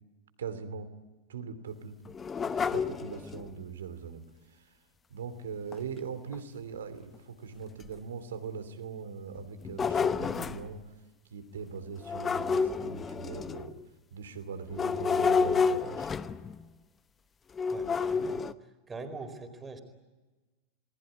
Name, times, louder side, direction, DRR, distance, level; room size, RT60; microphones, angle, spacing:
voice 1, 0.4-0.9 1.3-1.9 2.4-4.8 5.1-10.9 11.3-13.8 14.1-16.1, right 6 dB, 65° right, 10 dB, 2.8 m, -41 dB
sound 1, 2.0-3.5 5.7-5.8 6.3-6.4 7.1-7.2 7.8-7.9 9.4-10.7 12.0-13.8 14.7-16.6 17.6-18.5, left 5 dB, 20° left, 0.9 m, -30 dB
voice 2, 17.7-19.8, right 3 dB, 15° right, 7 dB, 4.4 m, -43 dB
29.0 x 20.0 x 9.6 m, 1.2 s
figure-of-eight pair, 90°, 0 cm